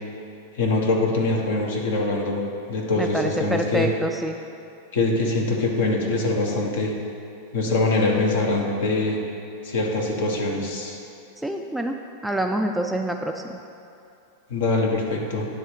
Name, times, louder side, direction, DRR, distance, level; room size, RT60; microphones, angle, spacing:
voice 1, 0.5-2.4 2.7-3.9 4.9-6.9 7.5-9.2 9.6-11.0 14.5-15.5, left 2 dB, 55° left, 0 dB, 1.1 m, -23 dB
voice 2, 3.0-4.4 11.4-12.0 12.2-13.4, right 1 dB, 5° right, 3 dB, 0.3 m, -26 dB
9.4 x 3.5 x 5.7 m, 2.6 s
figure-of-eight pair, 90°, 0 cm